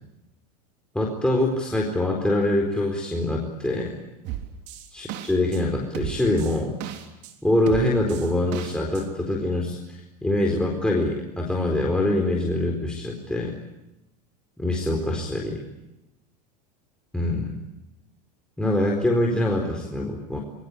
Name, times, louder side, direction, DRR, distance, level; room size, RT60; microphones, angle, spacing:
voice 1, 0.9-4.0 4.9-6.8 7.4-13.5 14.6-15.6 17.1-17.6 18.6-20.4, left 1 dB, 5° left, 0 dB, 4.4 m, -24 dB
sound 1, 4.3-5.6 5.9-7.3 7.7-9.0, right 11 dB, 55° right, 3.5 m, -34 dB
26.5 x 23.5 x 8.4 m, 0.93 s
hypercardioid pair, 105°, 21 cm